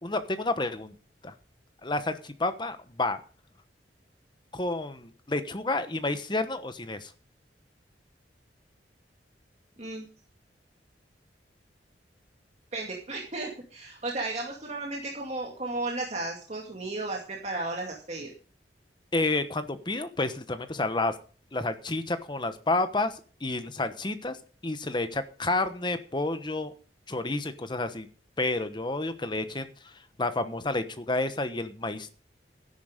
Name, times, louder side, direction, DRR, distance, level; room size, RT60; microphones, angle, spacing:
voice 1, 0.0-0.9 1.2-1.3 1.8-3.2 4.5-7.1 19.1-21.1 21.5-24.4 24.6-26.7 27.1-28.1 28.4-29.7 30.2-32.1, left 2 dB, 25° left, 10 dB, 1.1 m, -30 dB
voice 2, 12.7-18.3, right 2 dB, 40° right, -1 dB, 2.3 m, -34 dB
13.0 x 10.5 x 5.1 m, 0.39 s
head